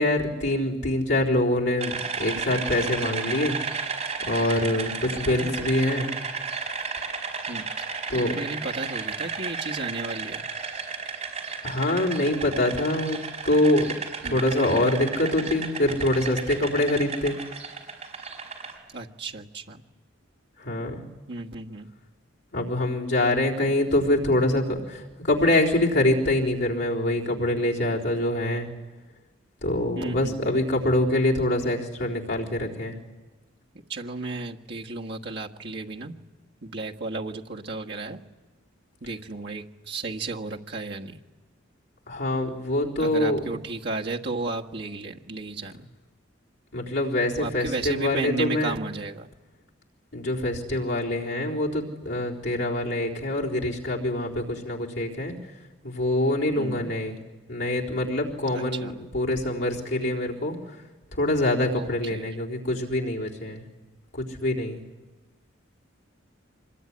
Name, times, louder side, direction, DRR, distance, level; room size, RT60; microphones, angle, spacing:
voice 1, 0.0-3.6 4.3-6.1 8.1-8.3 11.6-13.2 13.5-13.9 14.2-17.4 20.6-21.0 22.5-28.7 29.6-33.0 42.1-43.4 46.7-48.7 50.1-55.3 55.8-57.2 57.5-60.6 61.1-63.6 64.1-64.8, left 1 dB, 65° left, -3 dB, 4.0 m, -25 dB
sound 1, 1.8-18.7, right 5 dB, 35° right, 5.1 m, -33 dB
voice 2, 5.3-5.7 7.5-7.7 8.1-10.4 14.2-14.4 18.9-19.8 21.3-21.9 29.9-30.6 33.9-36.1 36.6-38.2 39.0-41.2 43.0-45.9 47.4-49.3 56.6-56.9 58.5-58.9 61.7-62.3, right 3 dB, 55° right, 0 dB, 1.5 m, -34 dB
25.0 x 21.5 x 9.8 m, 1.2 s
head